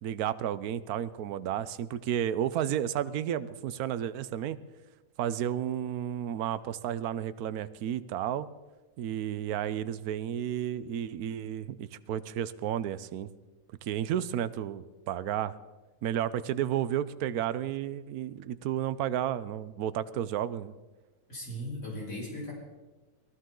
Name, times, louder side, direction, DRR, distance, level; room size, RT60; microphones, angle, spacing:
voice 1, 0.0-4.6 5.2-8.5 9.0-13.3 13.8-15.6 16.0-20.7, right 10 dB, 80° right, 15 dB, 1.1 m, -32 dB
voice 2, 21.3-22.5, left 1 dB, 65° left, -5 dB, 5.1 m, -37 dB
19.5 x 14.5 x 3.8 m, 1.2 s
omnidirectional pair, 1.6 m